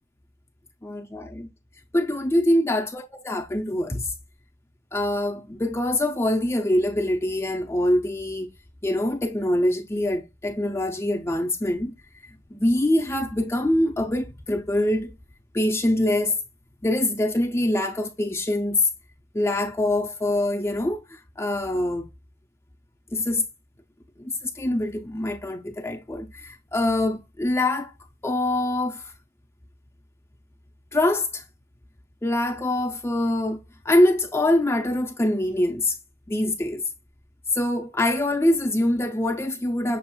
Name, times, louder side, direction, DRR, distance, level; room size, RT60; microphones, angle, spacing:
voice 1, 0.8-1.5 1.9-4.1 4.9-8.5 8.8-11.9 12.5-15.1 15.5-16.3 16.8-18.9 19.3-22.1 23.1-23.4 24.2-27.9 28.2-29.0 30.9-31.4 32.2-33.6 33.8-36.0 36.3-36.9 37.5-40.0, left 1 dB, 15° left, 0.5 m, -24 dB
6.9 x 3.0 x 2.2 m
head